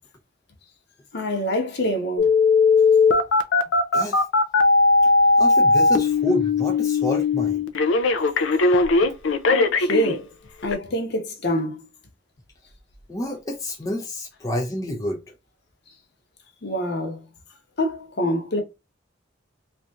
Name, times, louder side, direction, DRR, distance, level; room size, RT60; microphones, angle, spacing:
voice 1, 1.1-2.3 9.5-10.3 10.6-11.8 16.6-17.2 17.8-18.6, equal, 60° left, 1.1 m, -25 dB
Telephone, 2.2-10.2 10.7-10.8, left 3 dB, 75° left, 0.5 m, -18 dB
voice 2, 3.9-4.2 5.0-5.1 5.4-7.6 8.6-8.8 13.1-15.2, left 1 dB, 15° left, 0.6 m, -29 dB
3.1 x 2.7 x 3.6 m
head